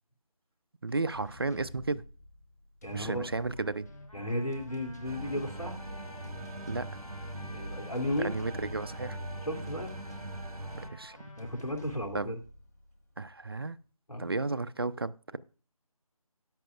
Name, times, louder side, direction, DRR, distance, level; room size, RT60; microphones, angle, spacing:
voice 1, 0.8-2.0 2.9-3.9 6.7-6.9 8.2-9.2 10.7-11.2 12.1-12.3 13.2-13.8 14.2-15.4, right 3 dB, 40° right, 0.5 m, -33 dB
sound 1, 0.9-13.6, left 1 dB, 25° left, 1.0 m, -51 dB
voice 2, 2.8-3.3 4.1-5.8 7.5-8.3 9.4-9.9 11.4-12.4 14.1-14.3, left 1 dB, 85° left, 2.8 m, -34 dB
Trumpet, 3.5-12.0, left 1 dB, 70° left, 2.8 m, -54 dB
sound 2, 5.0-10.9, right 1 dB, 80° right, 1.4 m, -41 dB
13.5 x 9.8 x 2.4 m
figure-of-eight pair, 160°, 19 cm